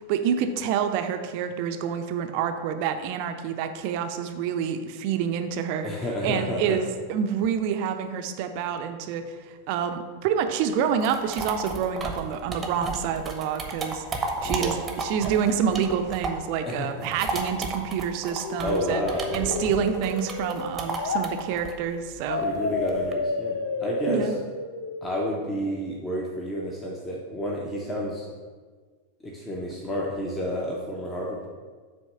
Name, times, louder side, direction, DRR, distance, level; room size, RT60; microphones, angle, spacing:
voice 1, 0.1-5.9 6.2-9.2 9.7-19.0 19.3-22.4 24.1-24.4, right 8 dB, 45° right, 7 dB, 0.5 m, -27 dB
voice 2, 5.8-6.8 14.4-14.8 16.6-17.1 18.6-19.7 22.4-24.3 25.0-28.3 29.2-31.5, equal, 15° left, -2 dB, 0.8 m, -30 dB
sound 1, 10.7-16.5 16.8-23.1, right 3 dB, 20° right, 0.8 m, -33 dB
sound 2, 18.4-21.3 22.3-25.3, left 3 dB, 65° left, 0.6 m, -31 dB
7.8 x 3.0 x 5.5 m, 1.5 s
figure-of-eight pair, 90°, 0 cm